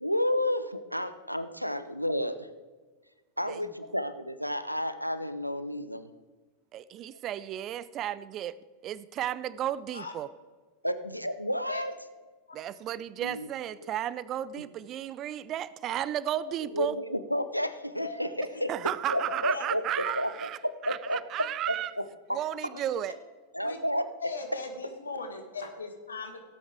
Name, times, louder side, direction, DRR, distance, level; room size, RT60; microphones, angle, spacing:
voice 1, 0.0-2.5 3.4-6.1 10.8-11.9 13.2-13.5 13.8-13.9 16.7-18.7 19.1-22.0 22.3-22.4 23.5-24.1, equal, 90° right, 13 dB, 0.6 m, -31 dB
voice 2, 6.7-8.5 8.8-10.3 12.5-16.9 18.7-21.9 22.3-23.1, right 11 dB, 35° right, 19 dB, 0.4 m, -33 dB
voice 3, 19.1-19.6 20.0-20.1 22.7-22.8 23.6-23.8 24.2-26.4, left 3 dB, 75° left, 5 dB, 1.7 m, -38 dB
17.0 x 8.5 x 3.6 m, 1.4 s
figure-of-eight pair, 90°, 0 cm